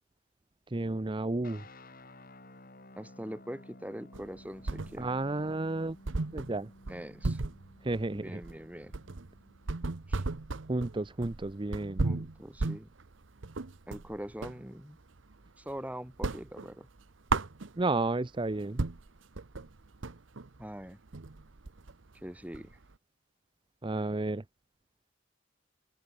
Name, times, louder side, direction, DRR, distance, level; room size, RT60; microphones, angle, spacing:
voice 1, 0.7-1.7 5.0-6.0 6.3-6.7 7.8-8.4 10.7-12.1 17.8-18.8 23.8-24.4, right 2 dB, 25° right, 0.7 m, -32 dB
sound 1, 1.4-9.7, left 1 dB, 50° left, 7.8 m, -55 dB
voice 2, 3.0-5.1 6.9-7.4 8.1-8.9 10.1-10.2 12.0-12.9 13.9-15.0 15.6-16.9 20.6-21.0 22.1-22.8, equal, 10° right, 4.3 m, -43 dB
sound 2, 4.1-5.3 5.6-5.7 6.0-14.6 15.0-15.8 16.1-18.1 18.5-18.6 18.8-22.9, right 3 dB, 85° right, 1.0 m, -35 dB
head